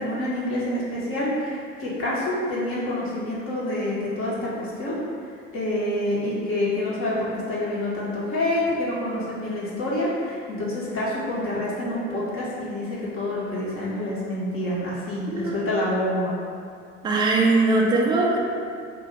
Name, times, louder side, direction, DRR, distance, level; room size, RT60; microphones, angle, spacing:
voice 1, 0.0-5.0 5.5-16.4, left 1 dB, 35° left, -7 dB, 0.9 m, -27 dB
voice 2, 15.3-15.7 17.0-18.4, right 3 dB, 15° right, -1 dB, 0.3 m, -21 dB
2.8 x 2.4 x 4.0 m, 2.3 s
figure-of-eight pair, 65°, 37 cm